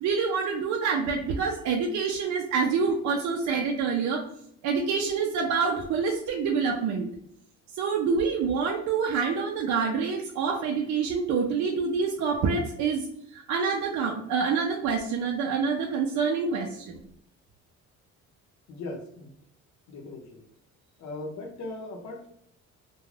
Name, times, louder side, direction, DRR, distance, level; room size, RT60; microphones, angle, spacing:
voice 1, 0.0-4.3 4.6-7.1 7.7-13.1 13.3-17.0, right 5 dB, 70° right, 1 dB, 0.5 m, -27 dB
voice 2, 18.7-19.3 19.9-20.4 21.0-22.3, left 2 dB, 70° left, 1 dB, 0.7 m, -38 dB
2.3 x 2.2 x 3.1 m, 0.69 s
cardioid pair, 90°, 30 cm